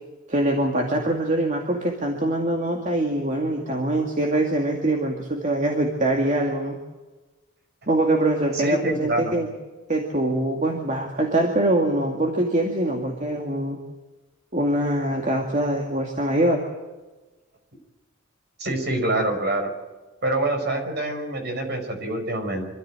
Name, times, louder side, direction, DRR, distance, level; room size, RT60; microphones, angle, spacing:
voice 1, 0.3-6.8 7.9-9.5 9.9-13.8 14.5-16.6, right 1 dB, 40° right, 1 dB, 2.4 m, -23 dB
voice 2, 8.5-9.3 18.6-19.7 20.2-22.6, right 1 dB, 55° right, 4 dB, 5.3 m, -25 dB
26.0 x 13.5 x 9.0 m, 1.2 s
head